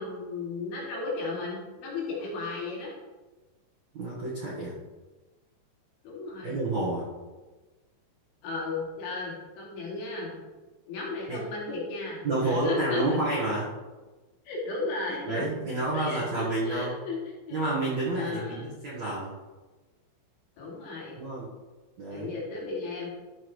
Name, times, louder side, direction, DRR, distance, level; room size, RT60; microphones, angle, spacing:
voice 1, 0.0-2.9 6.0-6.6 8.4-10.3 10.9-13.2 14.5-15.4 15.9-17.2 17.5-17.7 18.2-18.7 20.6-21.2 22.1-23.1, left 3 dB, 65° left, -4 dB, 4.5 m, -35 dB
voice 2, 3.9-4.7 6.4-7.1 11.3-11.4 12.2-13.7 15.2-16.9 17.5-19.3 21.2-21.5 22.0-22.3, right 2 dB, 65° right, -7 dB, 1.8 m, -29 dB
13.0 x 7.3 x 3.3 m, 1.2 s
omnidirectional pair, 6.0 m